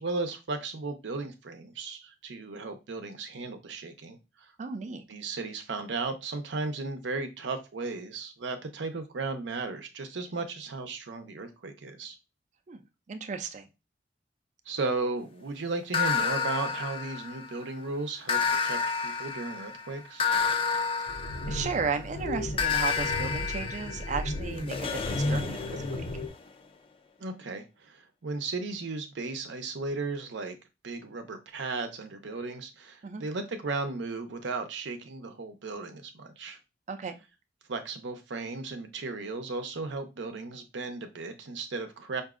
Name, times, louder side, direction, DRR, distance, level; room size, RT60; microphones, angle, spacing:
voice 1, 0.0-4.5 5.1-12.2 14.7-20.3 27.2-30.6 30.8-36.6 37.7-42.2, right 3 dB, 85° right, 7 dB, 0.6 m, -35 dB
voice 2, 4.6-5.0 12.7-12.8 13.1-13.7 21.5-26.0 33.0-33.2 36.9-37.2, right 5 dB, 40° right, 8 dB, 0.4 m, -34 dB
sound 1, 15.9-17.6 18.3-22.0 22.6-26.3, left 6 dB, 30° left, 0.3 m, -30 dB
sound 2, 21.1-26.3, left 1 dB, 75° left, 0.7 m, -34 dB
4.8 x 2.6 x 2.4 m, 0.27 s
head